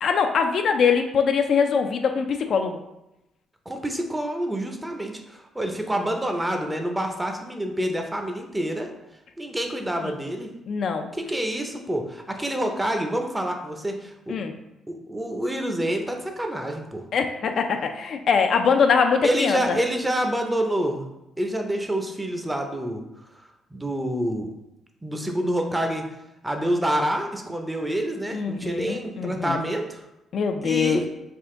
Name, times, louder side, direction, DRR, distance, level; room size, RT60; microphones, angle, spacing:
voice 1, 0.0-2.8 10.7-11.1 14.3-14.5 17.1-19.8 28.3-29.6 30.3-31.0, left 6 dB, 60° left, 5 dB, 0.3 m, -22 dB
voice 2, 3.7-8.9 9.4-10.5 11.1-14.4 14.9-17.1 19.2-21.0 21.4-23.0 23.4-24.5 25.0-26.1 26.4-30.0 30.6-31.0, right 1 dB, 10° right, 4 dB, 0.5 m, -27 dB
3.6 x 2.5 x 3.6 m, 0.91 s
cardioid pair, 90°, 0 cm